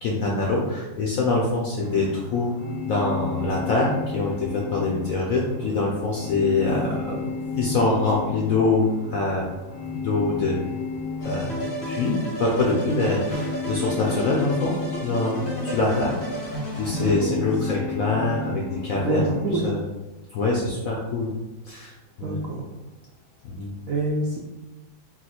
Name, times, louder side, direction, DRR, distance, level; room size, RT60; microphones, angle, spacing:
voice 1, 0.0-2.5 2.9-7.1 7.6-9.4 9.9-10.5 11.2-14.7 15.0-19.8 20.3-21.3 21.7-21.9 22.2-22.4 23.4-23.7, left 3 dB, 70° left, -2 dB, 0.8 m, -24 dB
sound 1, 1.8-19.7, left 4 dB, 10° left, 0.5 m, -34 dB
voice 2, 6.8-7.3 16.9-17.4 19.0-19.7 22.2-22.7 23.9-24.4, right 2 dB, 80° right, -2 dB, 0.7 m, -27 dB
sound 2, 11.2-17.2, right 2 dB, 90° left, 1.9 m, -32 dB
3.9 x 2.4 x 4.3 m, 1.1 s
omnidirectional pair, 2.1 m